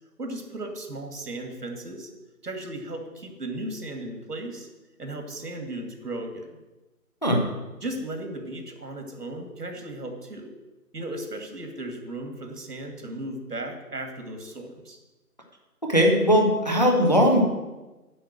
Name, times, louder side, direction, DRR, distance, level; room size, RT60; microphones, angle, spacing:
voice 1, 0.2-2.1 2.4-4.7 5.0-6.6 7.8-10.5 10.9-15.0, right 1 dB, 85° right, 4 dB, 2.4 m, -36 dB
voice 2, 15.8-17.4, equal, 30° left, 1 dB, 1.0 m, -19 dB
7.9 x 6.0 x 7.6 m, 1.1 s
figure-of-eight pair, 175°, 46 cm